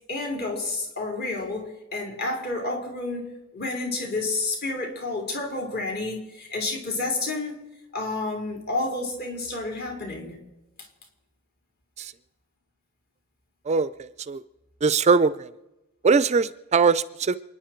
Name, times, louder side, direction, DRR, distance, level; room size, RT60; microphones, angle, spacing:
voice 1, 0.1-7.6 7.9-10.4, left 2 dB, 50° left, 0 dB, 4.1 m, -30 dB
voice 2, 14.8-15.5 16.0-17.4, right 5 dB, 30° right, 15 dB, 0.4 m, -20 dB
28.5 x 10.0 x 4.5 m, 0.98 s
head